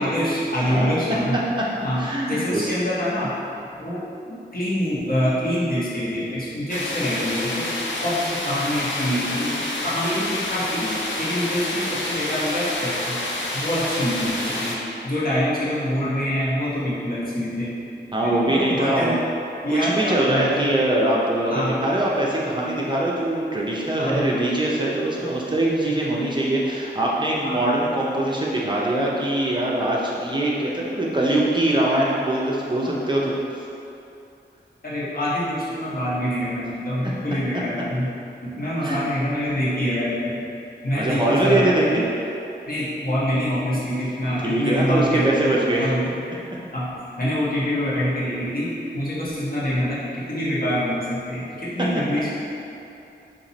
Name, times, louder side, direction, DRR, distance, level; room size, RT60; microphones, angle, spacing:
voice 1, 0.0-1.4 1.8-3.3 3.8-4.0 4.2-7.7 8.0-9.5 9.8-10.9 11.2-13.2 13.5-14.7 15.0-17.8 18.2-19.2 19.6-20.7 21.5-21.8 24.0-24.3 25.8-25.9 27.4-27.6 34.8-38.1 38.4-40.3 40.8-42.1 42.7-45.5 45.8-46.1 46.7-46.9 47.2-52.3, equal, 50° left, -10 dB, 1.4 m, -25 dB
voice 2, 2.0-2.7 18.1-19.2 19.7-33.4 37.0-37.1 38.8-39.0 40.9-42.0 44.4-45.9, right 1 dB, 25° right, -5 dB, 0.5 m, -22 dB
sound 1, 6.7-14.8, left 1 dB, 80° left, 0.6 m, -28 dB
4.3 x 2.8 x 4.1 m, 2.7 s
wide cardioid pair, 90°, 19 cm